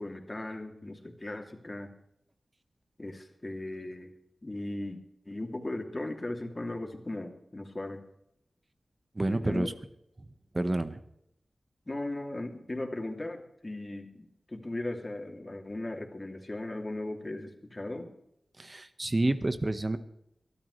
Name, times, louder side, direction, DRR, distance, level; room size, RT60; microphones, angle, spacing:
voice 1, 0.0-1.9 3.0-4.1 4.4-5.0 5.2-8.0 9.2-9.7 11.9-18.1, left 2 dB, 35° left, 3 dB, 3.0 m, -37 dB
voice 2, 9.1-9.7 10.5-11.0 18.6-20.0, right 2 dB, 35° right, 10 dB, 1.5 m, -29 dB
23.0 x 13.0 x 3.4 m, 0.76 s
cardioid pair, 45°, 0 cm